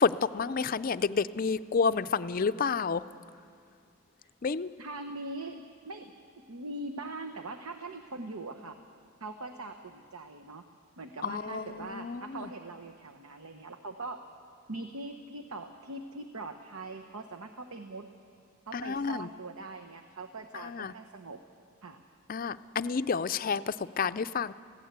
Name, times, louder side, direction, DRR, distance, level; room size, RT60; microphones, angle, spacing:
voice 1, 0.0-3.0 4.4-4.7 11.2-12.5 18.7-19.3 20.6-20.9 22.3-24.5, left 5 dB, 40° left, 13 dB, 0.4 m, -30 dB
voice 2, 4.8-6.1 6.5-8.8 9.2-10.6 11.0-14.2 14.7-18.1 18.7-21.4 21.8-22.0, right 2 dB, 90° right, 6 dB, 0.9 m, -42 dB
21.0 x 16.0 x 8.1 m, 2.3 s
head